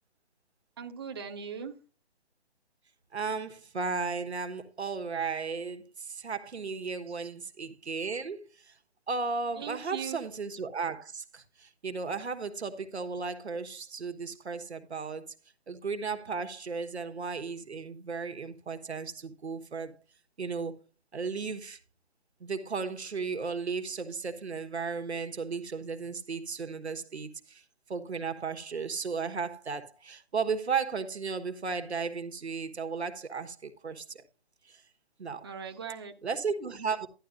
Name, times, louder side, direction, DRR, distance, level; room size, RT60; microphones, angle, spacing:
voice 1, 0.8-1.8 7.1-7.3 9.6-10.2 35.4-36.1, right 7 dB, 25° right, 0.5 m, -39 dB
voice 2, 3.1-8.7 9.1-15.3 15.7-19.9 20.4-20.8 21.1-21.8 22.4-27.6 27.9-34.2 34.7-34.8 35.2-35.5 36.2-37.1, right 5 dB, 90° right, 1.3 m, -35 dB
11.0 x 10.5 x 2.6 m
hypercardioid pair, 160°, 32 cm